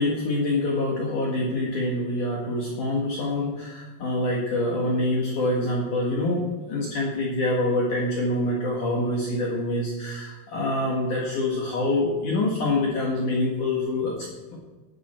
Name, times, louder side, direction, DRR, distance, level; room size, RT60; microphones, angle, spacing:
voice 1, 0.0-14.6, left 2 dB, 60° left, -3 dB, 2.2 m, -26 dB
17.0 x 9.8 x 4.4 m, 1.3 s
omnidirectional pair, 5.8 m